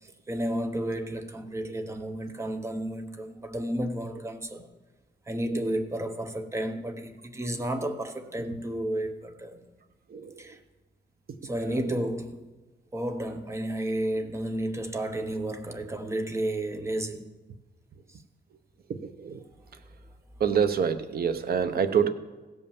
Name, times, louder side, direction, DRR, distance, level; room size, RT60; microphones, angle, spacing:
voice 1, 0.0-4.7 5.3-9.7 10.4-10.6 11.4-12.5 12.9-17.3 18.1-18.2 19.7-19.8, right 1 dB, 15° right, 0.8 m, -32 dB
voice 2, 19.0-19.4 20.4-22.1, right 7 dB, 55° right, 0.8 m, -26 dB
16.0 x 5.5 x 7.0 m
wide cardioid pair, 170°, 19 cm